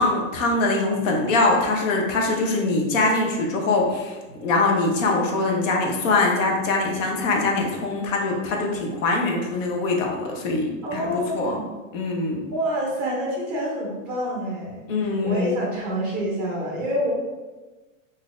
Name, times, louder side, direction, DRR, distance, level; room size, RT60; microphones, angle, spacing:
voice 1, 0.0-11.6 11.9-12.4 14.9-15.6, left 3 dB, 65° left, 1 dB, 0.8 m, -23 dB
voice 2, 10.8-11.7 12.5-17.1, equal, 5° right, -5 dB, 0.5 m, -27 dB
3.7 x 2.7 x 2.5 m, 1.2 s
supercardioid pair, 170°, 41 cm